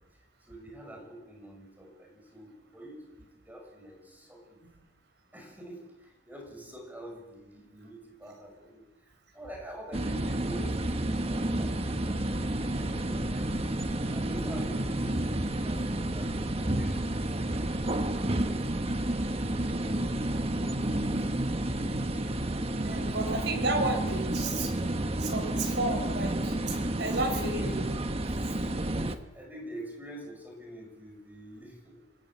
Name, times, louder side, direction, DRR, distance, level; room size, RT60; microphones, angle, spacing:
voice 1, 0.1-4.6 5.3-17.2 18.0-22.0 22.8-23.1 27.3-27.9 28.8-32.1, equal, 10° right, 1 dB, 6.5 m, -46 dB
sound 1, 9.9-29.2, right 1 dB, 35° right, 1.3 m, -30 dB
voice 2, 22.8-24.9 25.2-27.8, right 2 dB, 70° right, 2 dB, 4.7 m, -32 dB
27.0 x 21.5 x 7.8 m, 1.1 s
head